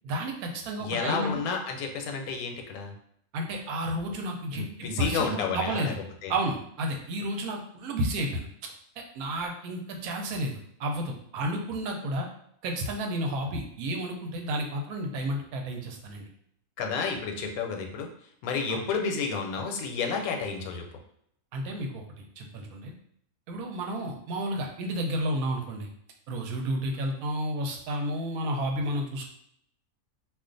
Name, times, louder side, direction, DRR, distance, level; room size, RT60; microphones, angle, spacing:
voice 1, 0.0-1.3 3.3-4.6 5.0-6.0 6.3-8.4 9.0-12.3 12.6-16.2 18.7-18.8 21.5-22.9 23.5-25.9 26.3-29.3, right 1 dB, 90° right, 2 dB, 1.1 m, -31 dB
voice 2, 0.8-2.9 4.5-5.9 6.2-6.3 16.8-18.1 18.4-20.9, left 5 dB, 85° left, 3 dB, 1.1 m, -31 dB
2.4 x 2.4 x 3.7 m, 0.70 s
omnidirectional pair, 1.5 m